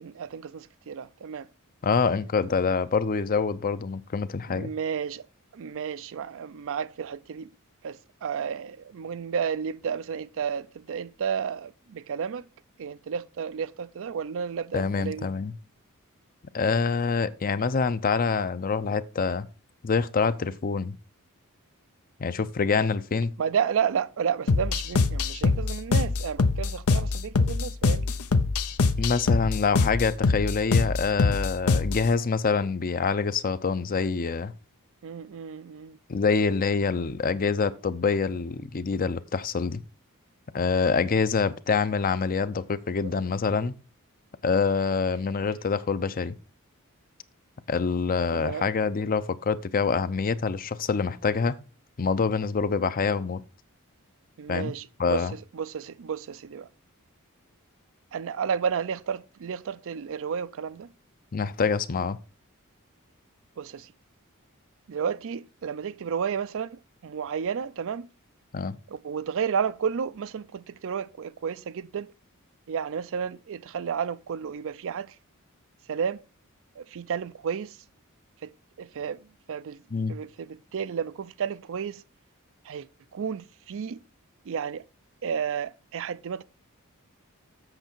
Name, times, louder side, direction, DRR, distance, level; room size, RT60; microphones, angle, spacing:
voice 1, 0.0-1.5 4.5-5.2 5.5-7.5 7.8-12.4 12.8-15.3 23.4-28.1 35.0-36.0 48.3-48.6 54.4-55.2 55.5-56.7 58.1-60.9 63.6-63.9 64.9-68.1 68.9-72.1 72.7-75.1 75.9-76.2 76.8-77.7 78.4-78.5 78.8-79.2 79.5-79.8 80.1-82.0 82.7-82.9 83.1-84.0 84.5-84.8 85.2-86.4, right 7 dB, 65° right, 0.4 m, -32 dB
voice 2, 1.8-4.7 14.7-15.5 16.5-19.5 19.8-20.9 22.2-23.3 29.0-34.5 36.1-39.8 40.5-43.7 44.4-46.3 47.7-51.6 52.0-53.4 54.5-54.7 55.0-55.3 61.3-62.2 68.5-68.7 79.9-80.1, left 5 dB, 40° left, 0.5 m, -26 dB
sound 1, 24.5-32.1, left 4 dB, 90° left, 0.8 m, -24 dB
7.9 x 6.7 x 4.5 m
head